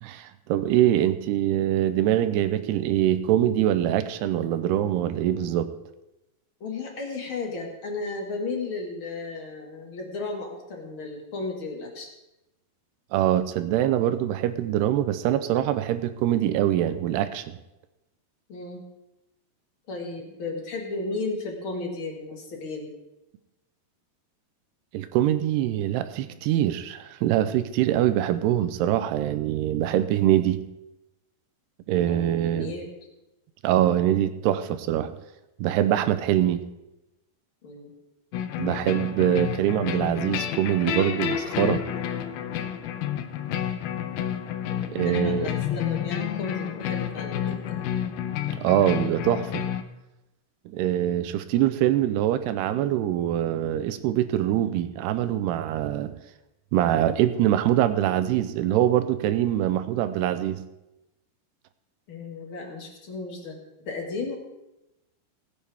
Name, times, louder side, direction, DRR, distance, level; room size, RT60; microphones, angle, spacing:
voice 1, 0.0-5.7 13.1-17.6 24.9-30.6 31.9-32.7 33.6-35.1 35.6-36.6 38.6-41.8 44.9-45.5 48.6-49.6 50.7-56.2 56.7-60.6, right 12 dB, 80° right, 11 dB, 2.7 m, -24 dB
voice 2, 6.6-12.1 18.5-18.8 19.9-22.9 32.0-32.9 34.7-34.8 37.6-37.9 44.6-47.8 62.1-63.6 63.9-64.3, left 3 dB, 45° left, 1 dB, 1.9 m, -34 dB
sound 1, 38.3-49.8, left 10 dB, 75° left, 2.3 m, -30 dB
20.0 x 8.8 x 3.5 m, 0.96 s
omnidirectional pair, 4.8 m